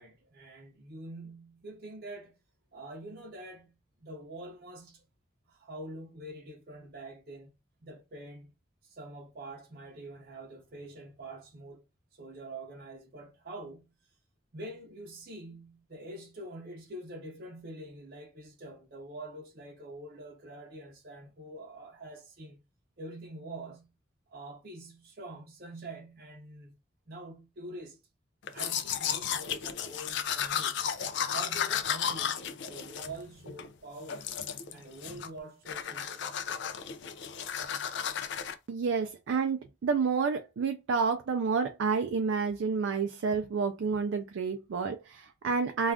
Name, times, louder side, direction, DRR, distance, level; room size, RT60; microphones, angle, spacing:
voice 1, 0.0-2.4 2.7-5.0 5.5-7.5 7.8-8.5 8.8-11.8 12.1-13.9 14.5-22.6 23.0-23.9 24.3-26.7 27.1-28.0 28.5-30.8 31.3-34.3 34.7-36.3, right 1 dB, 55° right, 0.6 m, -45 dB
Domestic sounds home sounds, 28.5-33.7 34.1-34.7 35.0-35.4 35.7-38.5, left 8 dB, 70° left, 0.4 m, -34 dB
voice 2, 38.7-45.9, right 5 dB, 90° right, 0.4 m, -29 dB
2.4 x 2.3 x 3.4 m
head